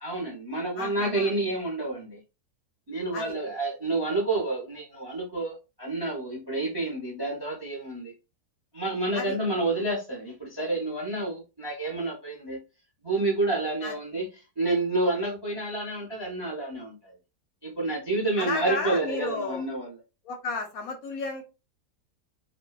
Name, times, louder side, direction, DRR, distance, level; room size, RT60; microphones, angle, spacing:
voice 1, 0.0-2.2 2.9-8.1 8.7-12.6 13.0-17.1 17.6-20.0, right 2 dB, 35° right, 0.3 m, -29 dB
voice 2, 0.8-1.3 3.1-3.3 9.1-9.3 13.8-13.9 18.4-19.6 20.2-21.4, left 3 dB, 70° left, 0.9 m, -33 dB
2.6 x 2.2 x 2.2 m
omnidirectional pair, 1.8 m